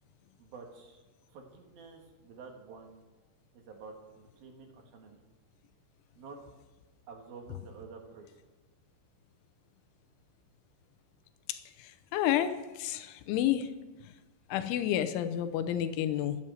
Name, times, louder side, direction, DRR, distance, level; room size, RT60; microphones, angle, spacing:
voice 1, 0.4-1.0 1.3-3.0 3.5-5.2 6.2-6.4 7.1-8.3, right 4 dB, 60° right, 2 dB, 3.0 m, -49 dB
voice 2, 11.5-13.7 14.5-16.4, left 11 dB, 85° left, 9 dB, 3.2 m, -30 dB
13.5 x 11.0 x 8.0 m, 1.1 s
omnidirectional pair, 5.6 m